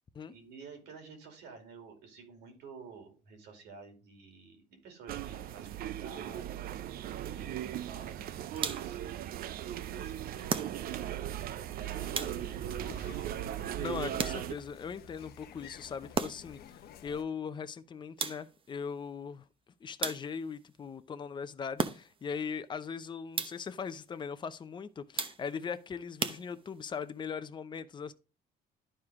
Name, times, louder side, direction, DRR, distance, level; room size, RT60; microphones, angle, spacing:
voice 1, 0.3-9.2 9.9-10.9 11.4-13.1 14.0-14.2, right 5 dB, 90° right, 2.8 m, -51 dB
sound 1, 5.1-14.5, right 11 dB, 60° right, 0.5 m, -38 dB
sound 2, 8.6-9.1 10.5-11.1 12.1-12.7 14.2-14.8 16.1-16.7 18.2-18.7 20.0-20.6 21.8-22.3 23.3-23.8 25.2-25.7 26.2-26.9, right 5 dB, 30° right, 0.8 m, -36 dB
sound 3, 11.8-17.2, left 9 dB, 65° left, 0.8 m, -52 dB
voice 2, 13.8-19.4 19.8-28.1, left 6 dB, 25° left, 0.6 m, -39 dB
11.5 x 4.8 x 3.6 m
cardioid pair, 110°, 17 cm